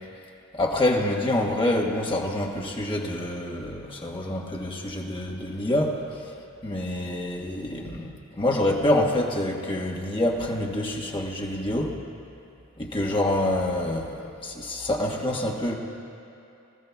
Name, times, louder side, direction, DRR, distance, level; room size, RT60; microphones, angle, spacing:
voice 1, 0.5-12.0 12.8-15.7, left 1 dB, 25° left, -2 dB, 1.4 m, -27 dB
25.0 x 15.5 x 2.3 m, 2.8 s
head